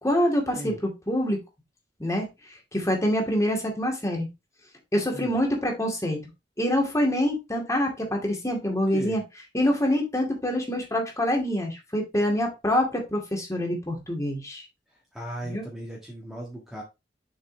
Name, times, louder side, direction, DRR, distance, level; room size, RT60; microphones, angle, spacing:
voice 1, 0.0-1.4 2.0-2.3 2.7-4.3 4.9-6.2 6.6-9.2 9.5-14.7 15.4-15.7, left 1 dB, 20° left, 2.3 m, -25 dB
voice 2, 8.7-9.2 15.1-16.8, right 1 dB, ahead, 1.6 m, -37 dB
6.9 x 5.6 x 3.3 m
head